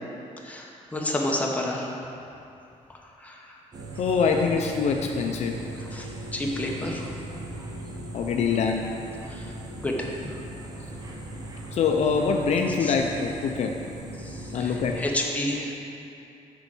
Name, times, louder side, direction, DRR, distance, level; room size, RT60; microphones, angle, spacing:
voice 1, 0.4-1.9 3.2-3.4 5.9-6.1 6.3-7.1 9.3-9.4 9.8-10.3 12.8-12.9 14.2-15.7, left 1 dB, 10° left, -2 dB, 0.9 m, -30 dB
sound 1, 3.7-15.1, right 1 dB, 30° right, 0.8 m, -38 dB
voice 2, 4.0-5.6 8.1-8.9 11.7-13.7 14.5-15.0, left 5 dB, 60° left, 2 dB, 0.5 m, -24 dB
6.8 x 4.5 x 6.1 m, 2.7 s
cardioid pair, 135°, 13 cm